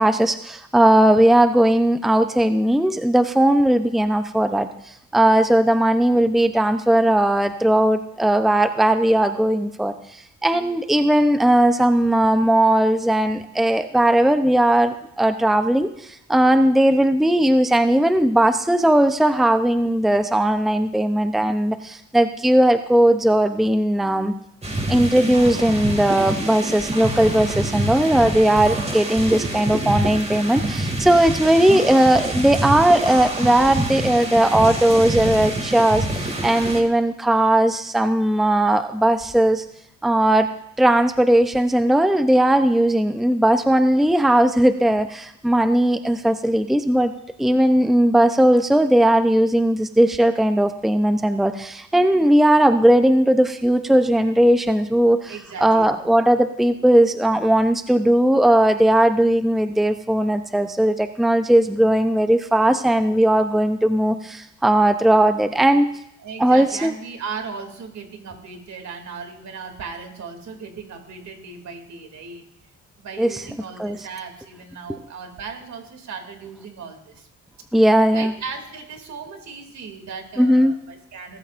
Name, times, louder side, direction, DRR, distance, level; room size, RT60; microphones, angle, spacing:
voice 1, 0.0-4.7 5.1-24.3 24.9-39.6 40.0-40.5 40.8-47.1 47.4-55.3 55.6-65.9 66.4-66.9 73.2-73.4 73.8-74.0 74.9-75.0 77.7-78.3 80.4-80.7, right 1 dB, ahead, 8 dB, 0.7 m, -18 dB
sound 1, 24.6-36.8, right 1 dB, 20° right, 2.6 m, -26 dB
voice 2, 55.3-56.0 66.2-72.4 73.0-77.3 78.1-81.4, right 5 dB, 65° right, 4 dB, 2.8 m, -36 dB
20.5 x 13.0 x 2.6 m, 0.75 s
cardioid pair, 90°, 30 cm